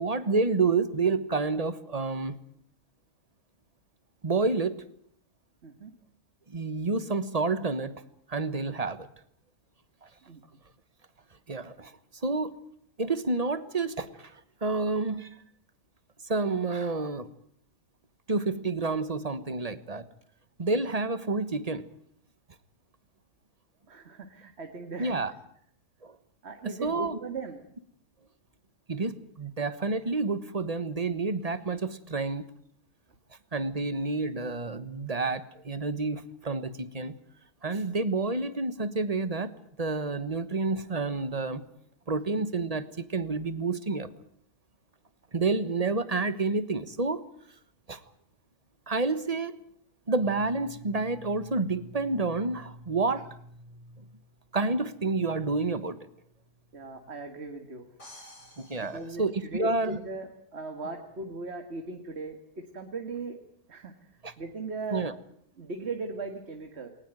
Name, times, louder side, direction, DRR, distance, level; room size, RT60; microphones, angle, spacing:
voice 1, 0.0-2.4 4.2-4.8 6.5-7.9 8.3-9.1 10.0-10.1 11.5-12.0 12.2-12.6 13.0-15.3 16.2-17.3 18.3-20.1 20.6-21.9 25.0-25.3 26.0-26.2 26.6-27.2 28.9-32.4 33.5-37.1 37.6-41.6 42.1-44.1 45.3-47.2 47.9-48.0 48.9-49.6 50.1-53.4 54.0-54.1 54.5-56.0 58.6-60.0 64.2-64.3 64.9-65.1, right 3 dB, 25° right, 13 dB, 1.3 m, -29 dB
voice 2, 23.9-25.2 26.4-27.6 56.7-57.9 58.8-63.4 63.7-63.9 64.4-65.1 65.6-66.9, right 3 dB, 45° right, 5 dB, 2.1 m, -38 dB
sound 1, 58.0-60.0, left 1 dB, 45° left, 6.7 m, -52 dB
21.0 x 19.5 x 9.1 m, 0.66 s
omnidirectional pair, 1.7 m